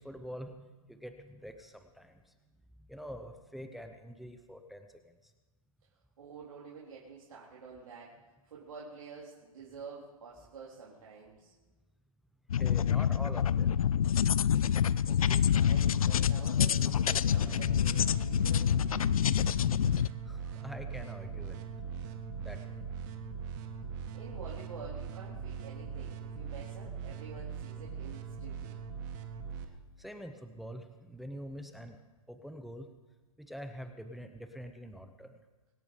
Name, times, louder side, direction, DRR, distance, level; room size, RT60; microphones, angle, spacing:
voice 1, 0.0-2.3 2.8-5.3 12.6-13.8 20.3-21.6 22.4-22.8 29.6-29.7 30.0-32.0 32.3-32.9 33.4-35.4, equal, ahead, 7 dB, 0.6 m, -45 dB
voice 2, 6.2-8.2 8.4-11.5 15.1-19.1 24.1-28.8, right 5 dB, 65° right, -5 dB, 4.0 m, -48 dB
sound 1, 12.5-20.1, left 8 dB, 75° left, 0.6 m, -27 dB
sound 2, 17.4-29.6, right 6 dB, 30° right, 1.6 m, -41 dB
25.0 x 8.8 x 5.0 m, 1.2 s
hypercardioid pair, 145°, 18 cm